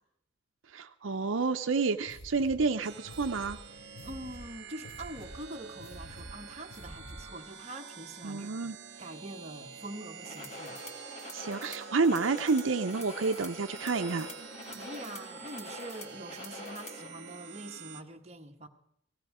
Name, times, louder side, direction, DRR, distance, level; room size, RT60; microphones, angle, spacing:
voice 1, 0.7-3.6 8.2-8.8 11.3-14.3, right 4 dB, 75° right, 0.6 m, -29 dB
sound 1, 2.0-7.4, equal, 75° left, 6.4 m, -49 dB
sound 2, 2.8-18.0, right 6 dB, 55° right, 1.2 m, -47 dB
voice 2, 4.0-8.5 9.0-10.8 14.7-18.7, right 1 dB, 30° right, 1.2 m, -44 dB
sound 3, 10.2-17.1, left 2 dB, 30° left, 1.8 m, -45 dB
18.0 x 16.0 x 4.9 m
head